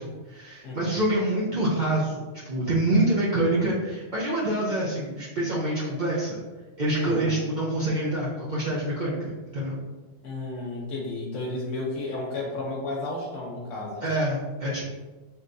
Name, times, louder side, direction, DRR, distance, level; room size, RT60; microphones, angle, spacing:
voice 1, 0.0-6.4 6.8-9.8 14.0-14.8, right 1 dB, 50° right, -7 dB, 0.6 m, -26 dB
voice 2, 0.6-1.0 7.0-7.4 10.2-14.0, left 2 dB, 85° left, -2 dB, 1.0 m, -32 dB
3.8 x 2.8 x 2.5 m, 1.3 s
omnidirectional pair, 1.3 m